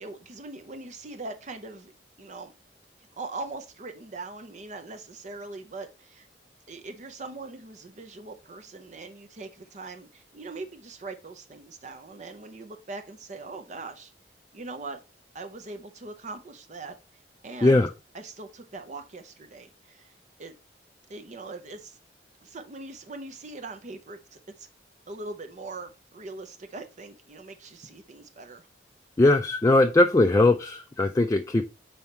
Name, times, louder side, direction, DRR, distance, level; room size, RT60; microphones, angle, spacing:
voice 1, 0.0-1.9 2.2-2.5 3.2-6.3 6.7-14.1 14.5-15.0 15.3-17.8 18.1-20.1 20.4-20.5 21.1-22.0 22.4-24.7 25.1-28.7, right 3 dB, 45° right, 0.6 m, -41 dB
voice 2, 29.2-31.6, left 2 dB, 20° left, 0.3 m, -20 dB
5.6 x 4.4 x 4.1 m
head